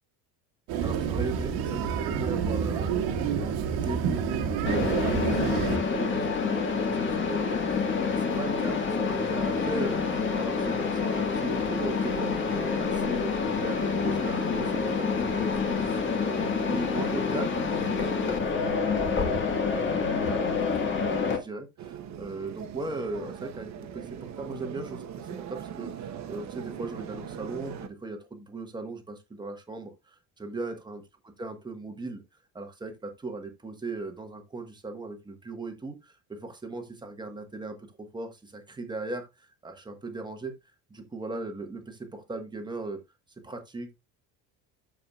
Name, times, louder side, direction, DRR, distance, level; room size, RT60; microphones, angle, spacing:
sound 1, 0.7-5.8, right 7 dB, 90° right, 2.0 m, -28 dB
voice 1, 0.8-19.4 19.7-32.2 32.5-40.5 40.9-43.0 43.4-43.9, right 3 dB, 10° right, 1.4 m, -38 dB
Mechanisms, 4.7-21.4, left 5 dB, 30° left, 1.7 m, -27 dB
sound 2, 21.8-27.9, right 9 dB, 45° right, 1.1 m, -40 dB
13.0 x 4.9 x 2.4 m
cardioid pair, 155°, 37 cm